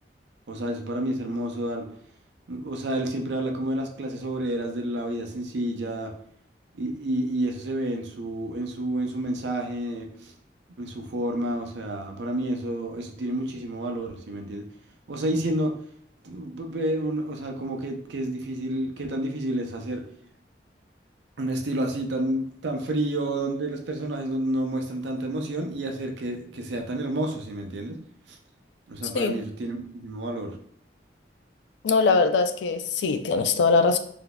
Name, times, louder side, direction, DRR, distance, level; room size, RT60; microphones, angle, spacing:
voice 1, 0.5-1.9 2.5-6.1 6.7-10.3 10.8-14.7 15.1-15.8 16.2-20.1 21.4-28.0 28.3-28.4 28.9-30.6, right 1 dB, 75° right, 3 dB, 0.5 m, -30 dB
voice 2, 31.8-34.0, left 4 dB, 80° left, 9 dB, 0.3 m, -21 dB
3.9 x 2.6 x 2.2 m, 0.64 s
head